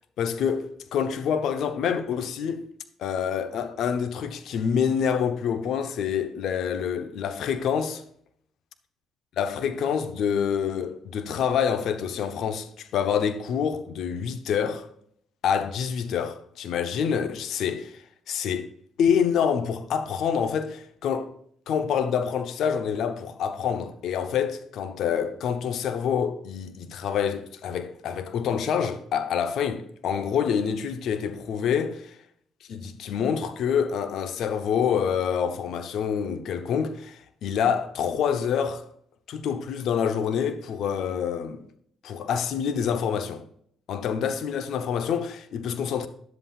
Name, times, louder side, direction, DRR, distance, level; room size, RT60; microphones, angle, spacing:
voice 1, 0.2-2.6 3.0-8.0 9.4-14.9 15.4-18.7 19.0-21.3 21.7-32.2 32.7-38.8 39.3-41.6 42.0-43.4 43.9-46.1, left 7 dB, 70° left, 0.9 m, -27 dB
10.5 x 7.8 x 2.5 m
cardioid pair, 80°, 0 cm